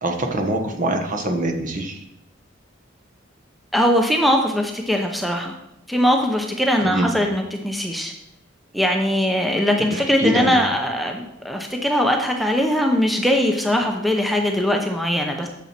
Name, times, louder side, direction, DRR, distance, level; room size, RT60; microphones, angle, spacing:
voice 1, 0.0-2.0 6.8-7.1 9.9-10.6, right 1 dB, 40° right, 4 dB, 1.2 m, -24 dB
voice 2, 3.7-5.5 5.9-8.1 8.7-15.5, equal, ahead, 2 dB, 0.7 m, -21 dB
8.8 x 7.1 x 4.3 m, 0.84 s
head